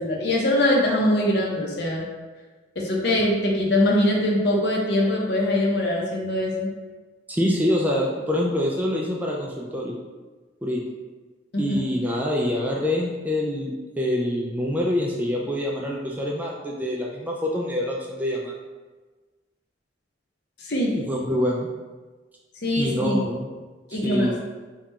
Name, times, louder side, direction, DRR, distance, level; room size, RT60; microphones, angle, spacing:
voice 1, 0.0-2.0 2.8-6.7 11.5-11.8 20.6-20.9 22.6-23.2 23.9-24.3, left 1 dB, 60° left, -2 dB, 0.8 m, -22 dB
voice 2, 7.3-10.0 10.6-10.8 11.6-18.5 20.9-21.7 22.8-23.5 23.9-24.4, left 1 dB, 10° right, -2 dB, 0.3 m, -25 dB
3.6 x 2.4 x 4.2 m, 1.3 s
head